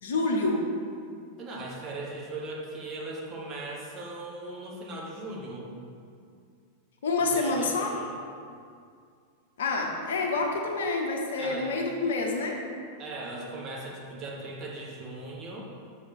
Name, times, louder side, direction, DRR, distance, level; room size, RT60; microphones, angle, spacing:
voice 1, 0.0-0.7 7.0-8.0 9.6-12.6, left 3 dB, 60° left, 1 dB, 0.9 m, -27 dB
voice 2, 1.4-5.7 7.2-8.1 11.4-11.7 13.0-15.6, right 2 dB, 30° right, -3 dB, 1.4 m, -39 dB
6.7 x 5.5 x 4.3 m, 2.3 s
figure-of-eight pair, 90°, 0 cm